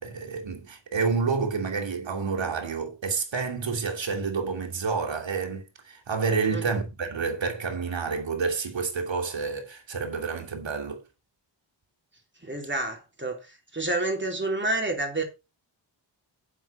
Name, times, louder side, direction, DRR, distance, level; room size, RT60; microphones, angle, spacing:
voice 1, 0.0-11.0, right 5 dB, 75° right, 3.0 m, -29 dB
voice 2, 12.4-15.2, right 2 dB, 25° right, 3.6 m, -29 dB
8.2 x 7.3 x 5.5 m
wide cardioid pair, 85°, 45 cm